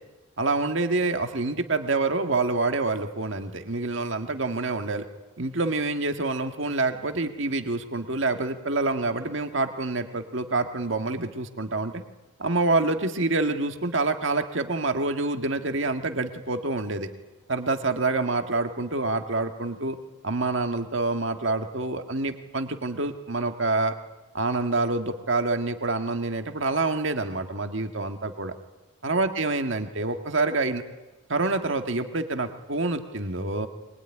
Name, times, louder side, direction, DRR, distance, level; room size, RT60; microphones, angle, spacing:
voice 1, 0.4-5.0 5.4-11.9 12.4-17.1 17.5-20.0 20.2-23.9 24.3-28.5 29.0-30.8 31.3-33.7, right 3 dB, 60° right, 7 dB, 1.8 m, -27 dB
23.5 x 20.5 x 10.0 m, 1.1 s
head